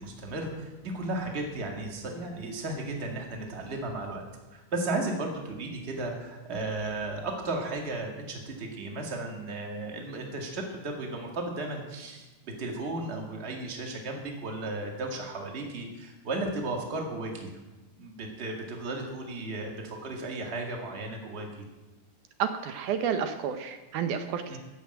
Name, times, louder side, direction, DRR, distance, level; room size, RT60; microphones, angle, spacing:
voice 1, 0.0-4.2 4.5-17.5 18.0-21.6 24.5-24.6, right 2 dB, 25° right, 2 dB, 1.7 m, -35 dB
voice 2, 22.4-24.6, right 7 dB, 75° right, 8 dB, 2.2 m, -30 dB
14.0 x 7.0 x 8.7 m, 1.1 s
omnidirectional pair, 3.7 m